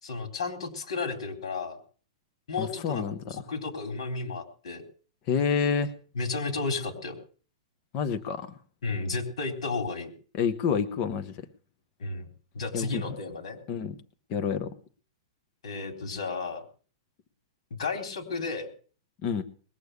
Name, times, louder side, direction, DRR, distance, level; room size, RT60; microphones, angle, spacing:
voice 1, 0.0-1.8 2.5-3.0 3.3-4.8 6.2-7.1 8.8-10.1 12.0-12.3 12.5-13.6 15.6-16.6 17.8-18.7, left 4 dB, 80° left, 5 dB, 3.8 m, -33 dB
voice 2, 2.6-3.2 5.3-5.9 7.9-8.5 10.4-11.3 12.7-13.0 13.7-14.0 14.3-14.7 19.2-19.4, left 6 dB, 30° left, 8 dB, 1.0 m, -28 dB
21.0 x 7.0 x 8.1 m, 0.42 s
supercardioid pair, 170°, 3 cm